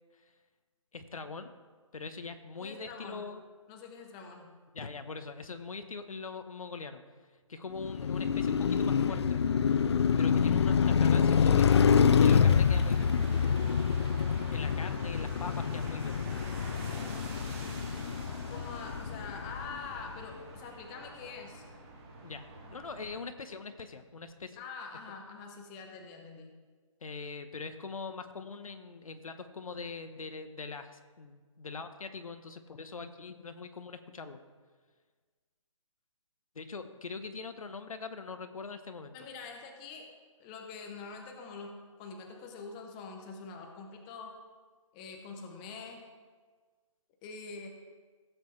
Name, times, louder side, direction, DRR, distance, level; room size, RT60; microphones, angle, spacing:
voice 1, 0.9-1.5 1.9-3.4 4.7-7.0 7.5-9.4 10.2-11.8 12.2-13.1 14.5-16.1 22.2-24.6 25.1-25.2 27.0-34.4 36.5-39.2, left 4 dB, 80° left, 9 dB, 1.1 m, -42 dB
voice 2, 2.6-3.3 3.7-4.5 18.5-21.7 24.6-26.5 39.1-40.1 40.4-44.3 44.9-46.0 47.2-47.7, left 4 dB, 15° left, 2 dB, 0.8 m, -45 dB
Car passing by, 7.8-20.0, left 6 dB, 50° left, 0.5 m, -26 dB
sound 1, 11.7-23.2, right 2 dB, 25° right, 1.8 m, -47 dB
16.0 x 8.1 x 3.3 m, 1.5 s
hypercardioid pair, 165°, 17 cm